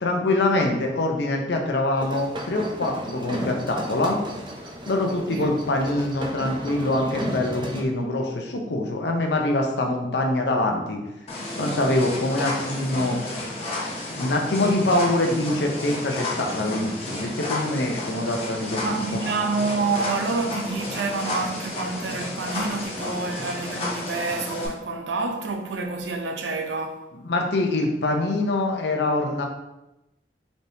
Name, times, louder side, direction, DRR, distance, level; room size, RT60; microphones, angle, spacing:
voice 1, 0.0-4.2 4.9-11.0 11.6-13.2 14.1-19.0 27.2-29.5, left 2 dB, 70° left, 0.7 m, -24 dB
sound 1, 2.0-7.8, equal, 25° right, 0.4 m, -34 dB
sound 2, 11.3-24.7, left 2 dB, 35° left, 0.7 m, -32 dB
voice 2, 18.8-27.1, right 3 dB, 80° right, 0.5 m, -28 dB
4.1 x 3.4 x 2.7 m
head